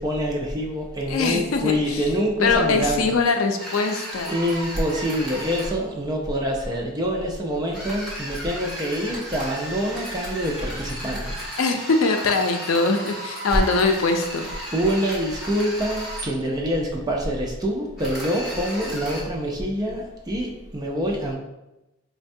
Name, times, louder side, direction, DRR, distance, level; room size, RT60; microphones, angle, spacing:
voice 1, 0.0-3.2 4.3-11.4 14.7-21.4, equal, 20° right, 0 dB, 0.4 m, -26 dB
voice 2, 1.1-2.0 2.4-4.3 11.6-14.5, left 3 dB, 80° left, 5 dB, 0.4 m, -22 dB
sound 1, 3.6-5.7 7.7-16.3 18.0-19.2, equal, ahead, 1.2 m, -35 dB
4.3 x 2.2 x 2.6 m, 0.97 s
head